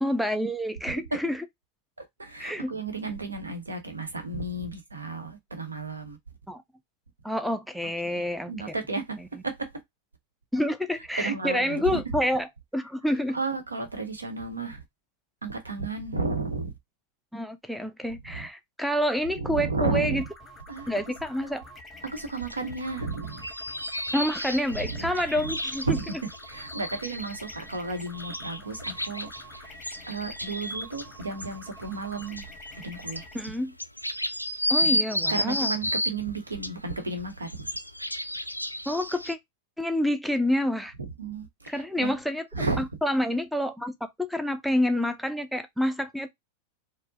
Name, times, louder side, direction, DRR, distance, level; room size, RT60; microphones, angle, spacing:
voice 1, 0.0-1.4 2.4-2.7 6.5-6.6 7.2-8.5 10.5-12.5 12.7-13.4 17.3-20.2 20.9-21.6 24.1-26.0 33.3-33.7 34.7-35.7 38.9-39.4 39.8-40.9 41.7-42.4 42.8-46.3, left 1 dB, ahead, 0.4 m, -28 dB
voice 2, 2.0-6.2 8.0-8.2 8.5-9.7 11.2-12.0 13.3-14.8 15.4-16.7 18.3-18.5 19.4-20.3 20.7-20.9 21.4-21.5 22.0-23.4 24.8-25.1 25.4-25.5 25.9-26.1 26.5-29.7 30.1-32.5 32.8-33.3 34.8-35.0 35.3-37.7 41.2-42.1 42.5-42.8, right 3 dB, 75° right, 0.9 m, -33 dB
sound 1, 20.2-33.3, left 1 dB, 15° left, 0.8 m, -47 dB
sound 2, 22.5-22.6 23.1-31.1 31.4-31.5 32.0-36.2 36.6-39.3, equal, 90° left, 0.3 m, -32 dB
4.3 x 2.1 x 2.5 m
figure-of-eight pair, 90°, 0 cm